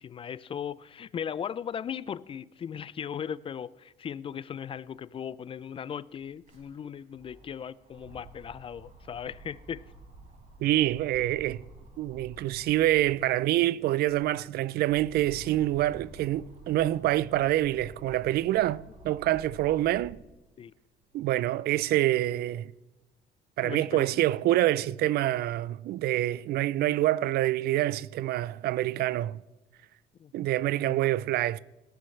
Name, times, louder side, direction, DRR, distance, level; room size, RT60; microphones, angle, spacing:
voice 1, 0.0-9.9 20.6-20.7 23.6-24.1 30.2-30.3, left 8 dB, 35° left, 0.3 m, -37 dB
sound 1, 5.7-13.3 13.8-20.3 20.8-22.0, right 2 dB, 50° right, 5.5 m, -51 dB
voice 2, 10.6-11.6 12.0-20.2 21.1-22.7 23.6-29.4 30.3-31.6, right 14 dB, 70° right, 0.4 m, -26 dB
17.5 x 12.0 x 3.2 m
cardioid pair, 110°, 17 cm